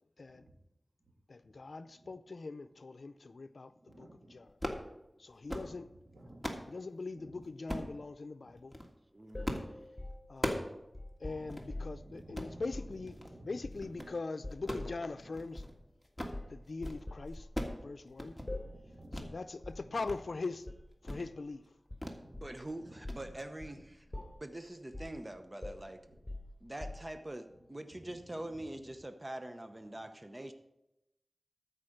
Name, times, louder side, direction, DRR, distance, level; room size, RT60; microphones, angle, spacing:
voice 1, 1.3-3.7 4.0-4.6 5.2-5.9 6.7-8.7 10.3-10.7 11.2-15.6 16.5-18.4 19.1-20.7 21.0-21.6, left 3 dB, 85° left, 0.5 m, -42 dB
voice 2, 3.9-4.5 5.7-5.8 6.1-6.6 7.2-7.3 8.4-8.5 11.2-12.6 13.2-13.5 15.1-15.3 18.6-19.2 22.2-22.4 22.8-22.9, right 1 dB, 70° right, 2.2 m, -55 dB
sound 1, 4.5-4.9 5.3-5.7 6.1-6.7 7.7-7.9 8.6-8.9 9.4-9.7 10.0-10.8 11.1-11.2 11.5-11.7 12.2-12.5 13.1-13.4 13.7-14.1 14.5-15.7 16.0-16.4 16.7-17.0 17.3-17.8 18.1-18.5 19.1-19.3 19.7-20.2 20.5-20.6 21.0-21.3 22.0-22.2 22.5-22.7 23.1-23.2, equal, 5° left, 1.7 m, -39 dB
voice 3, 9.1-9.9 22.3-24.1 24.4-26.0 26.6-30.5, right 1 dB, 30° right, 0.8 m, -44 dB
sound 2, 9.3-12.1 12.6-13.0 13.6-14.1 14.4-15.0 15.6-15.7 16.3-16.6 17.1-17.9 18.5-18.8 19.1-19.4 19.6-19.9 20.7-21.3 21.9-22.6 23.0-23.3 23.6-23.8 24.1-24.5 24.9-25.2 25.6-27.3, left 1 dB, 30° left, 3.3 m, -44 dB
13.0 x 5.0 x 6.5 m
wide cardioid pair, 45°, 0 cm